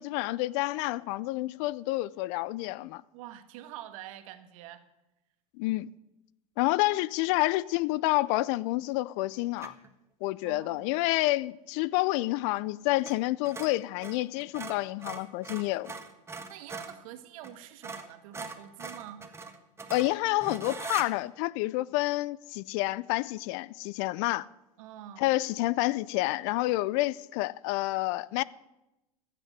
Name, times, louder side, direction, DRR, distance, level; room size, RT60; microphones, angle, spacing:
voice 1, 0.0-3.0 5.6-5.9 6.6-9.7 10.2-16.0 19.9-24.5 25.2-28.4, left 19 dB, 55° left, 0.5 m, -29 dB
voice 2, 3.1-4.9 10.4-10.9 16.5-19.2 24.8-25.3, right 12 dB, 65° right, 1.5 m, -46 dB
sound 1, 9.6-9.9 13.0-13.2 13.4-17.0 17.4-17.5 17.8-21.1, right 4 dB, 15° right, 1.5 m, -41 dB
15.0 x 6.6 x 9.9 m
hypercardioid pair, 105°, 19 cm